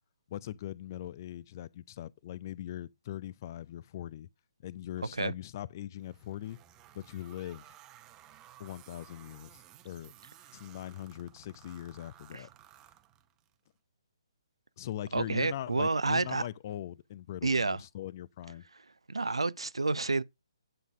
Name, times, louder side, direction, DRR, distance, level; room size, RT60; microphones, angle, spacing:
voice 1, 0.3-4.3 4.6-6.6 6.9-7.7 8.6-10.1 10.5-12.5 14.8-18.6, left 12 dB, 40° left, 0.5 m, -41 dB
sound 1, 6.0-13.5, right 12 dB, 20° right, 0.8 m, -57 dB
voice 2, 15.1-16.4 17.4-17.8 19.1-20.2, right 3 dB, 85° right, 0.6 m, -29 dB
9.3 x 4.0 x 6.1 m
figure-of-eight pair, 140°, 3 cm